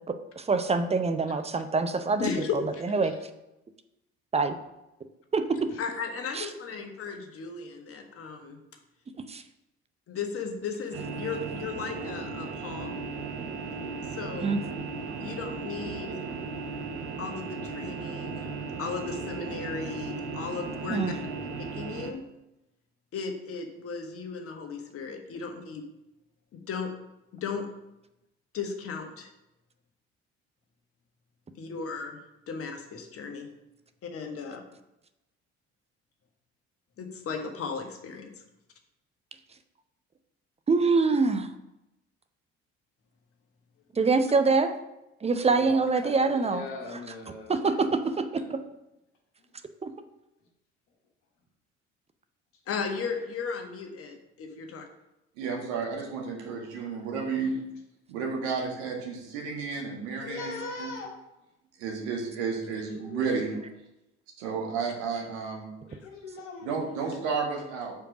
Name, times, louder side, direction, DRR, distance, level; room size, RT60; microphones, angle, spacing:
voice 1, 0.1-2.3 2.9-3.1 4.3-4.5 5.3-5.4 6.4-6.5 9.3-9.4 14.4-14.6 20.9-21.1 40.7-41.5 43.9-44.7 45.2-46.6 47.5-48.6 49.8-49.9, right 4 dB, 20° right, 8 dB, 0.6 m, -25 dB
voice 2, 2.2-3.0 5.8-8.6 10.1-12.9 14.0-14.6 15.2-16.2 17.2-18.5 18.8-21.1 21.6-22.3 23.1-25.8 26.5-26.9 27.3-27.7 28.5-29.3 31.5-32.2 32.5-33.5 34.0-34.6 37.0-38.3 52.7-54.8, left 5 dB, 40° left, 4 dB, 1.2 m, -35 dB
sound 1, 10.9-22.1, right 4 dB, 35° right, 1.0 m, -36 dB
voice 3, 45.4-47.8 57.3-57.5 60.2-61.1 62.4-63.4 65.8-66.8, left 3 dB, 65° left, -1 dB, 1.4 m, -41 dB
voice 4, 55.4-57.6 58.1-60.5 60.8-60.9 61.8-63.5 64.4-65.7 66.6-67.9, right 5 dB, 65° right, 0 dB, 1.7 m, -32 dB
5.0 x 4.6 x 6.0 m, 0.92 s
figure-of-eight pair, 50°, 35 cm